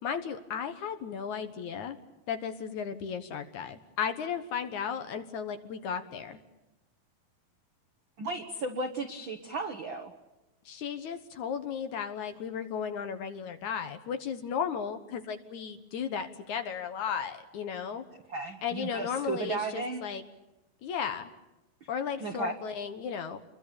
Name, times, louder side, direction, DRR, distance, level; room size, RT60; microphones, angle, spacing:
voice 1, 0.0-2.0 2.3-6.4 10.7-18.0 18.6-20.2 20.8-21.3 21.9-23.4, left 7 dB, 65° left, 8 dB, 2.2 m, -35 dB
voice 2, 8.2-10.1 18.3-20.0 22.2-22.5, right 3 dB, 80° right, 6 dB, 1.1 m, -34 dB
28.5 x 22.5 x 6.9 m, 1.0 s
omnidirectional pair, 4.3 m